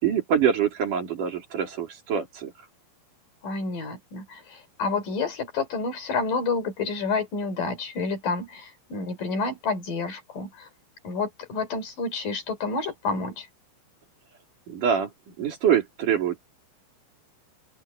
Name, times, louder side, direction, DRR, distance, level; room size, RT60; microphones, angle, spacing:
voice 1, 0.0-2.5 14.7-15.1 15.4-16.4, right 8 dB, 55° right, 4.4 m, -24 dB
voice 2, 3.4-10.7 11.0-13.5, left 4 dB, 60° left, 5.0 m, -29 dB
open air
omnidirectional pair, 4.4 m